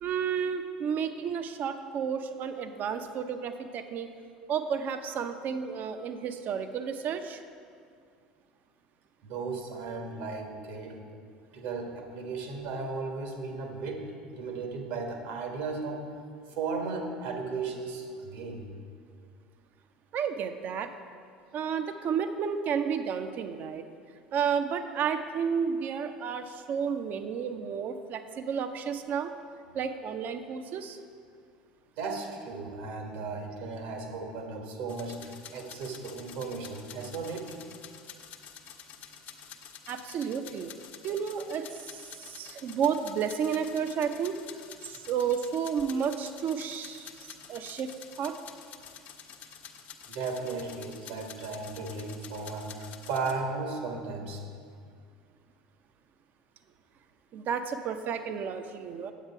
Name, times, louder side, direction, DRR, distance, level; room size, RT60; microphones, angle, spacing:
voice 1, 0.0-4.1 4.5-7.4 20.1-20.9 21.5-23.8 24.3-29.3 29.7-31.0 39.9-40.7 41.0-44.4 44.8-47.9 48.2-48.4 57.3-59.1, right 7 dB, 45° right, 8 dB, 0.6 m, -32 dB
voice 2, 9.2-11.0 11.5-16.1 16.5-18.7 32.0-37.5 50.1-54.4, right 4 dB, 65° right, 3 dB, 1.4 m, -35 dB
sound 1, 34.9-53.3, left 8 dB, 50° left, 0.9 m, -49 dB
9.2 x 8.0 x 4.6 m, 2.2 s
hypercardioid pair, 70°, 4 cm